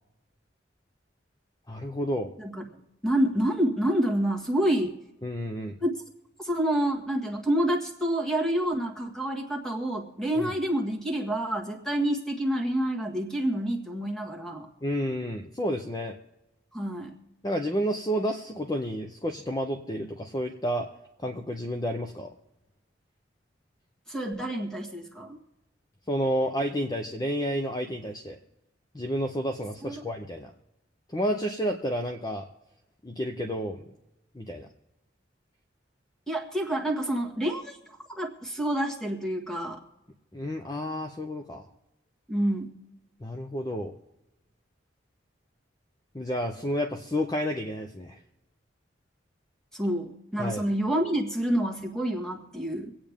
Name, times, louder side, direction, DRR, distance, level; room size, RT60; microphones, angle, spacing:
voice 1, 1.7-2.3 5.2-5.7 10.3-10.5 14.8-16.1 17.4-20.9 21.2-22.3 26.1-28.4 28.9-30.5 31.1-32.5 33.0-33.8 34.3-34.7 40.3-41.7 43.2-43.9 46.1-48.2 50.4-50.6, equal, 20° left, 4 dB, 0.7 m, -30 dB
voice 2, 3.0-5.0 5.8-5.9 6.4-14.7 16.7-17.2 24.1-25.4 29.8-30.0 36.3-37.8 38.1-39.8 42.3-42.7 49.7-52.9, right 1 dB, 5° left, 2 dB, 1.7 m, -28 dB
25.0 x 8.7 x 3.6 m, 0.95 s
head